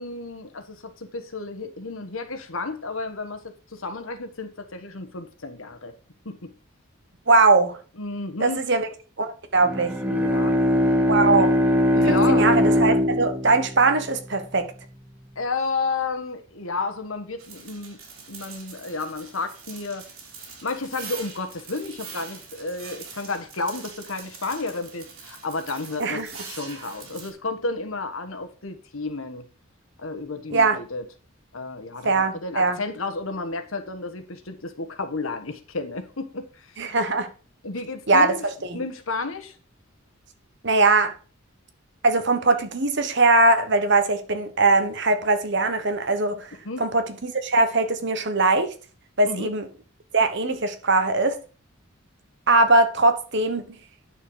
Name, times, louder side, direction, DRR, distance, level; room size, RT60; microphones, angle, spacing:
voice 1, 0.0-5.9 6.2-6.5 8.0-8.7 10.1-10.6 11.3-11.4 11.9-12.5 15.3-18.0 18.3-20.1 20.6-29.5 30.0-31.0 31.5-36.8 37.6-38.5 38.7-39.6 46.6-46.8 49.2-49.5, left 3 dB, 75° left, 1.3 m, -32 dB
voice 2, 7.3-7.8 8.4-8.9 9.2-9.9 11.1-11.5 12.1-14.7 26.0-26.3 30.5-30.8 32.0-32.8 36.8-37.3 38.1-38.3 38.7-38.8 40.6-41.1 42.0-46.5 46.8-48.7 49.2-49.7 50.1-51.4 52.5-53.6, right 3 dB, 55° right, 1.2 m, -21 dB
Bowed string instrument, 9.6-14.4, left 1 dB, 10° right, 1.2 m, -21 dB
sound 1, 17.4-27.3, right 5 dB, 80° right, 3.1 m, -43 dB
9.7 x 6.6 x 4.8 m
head